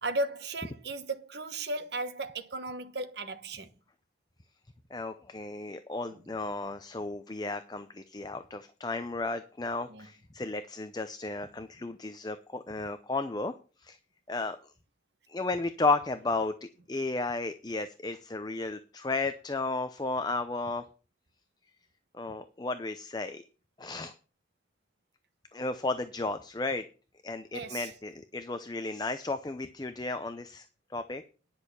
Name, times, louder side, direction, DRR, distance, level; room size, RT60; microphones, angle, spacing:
voice 1, 0.0-3.7 9.9-10.1 27.5-27.9, right 2 dB, 65° right, 1.2 m, -35 dB
voice 2, 4.9-13.5 13.8-14.0 14.3-14.6 15.3-16.5 16.9-20.8 22.1-23.4 23.8-24.1 25.5-26.8 27.2-31.2, left 3 dB, 20° left, 0.6 m, -33 dB
10.5 x 6.5 x 7.0 m
head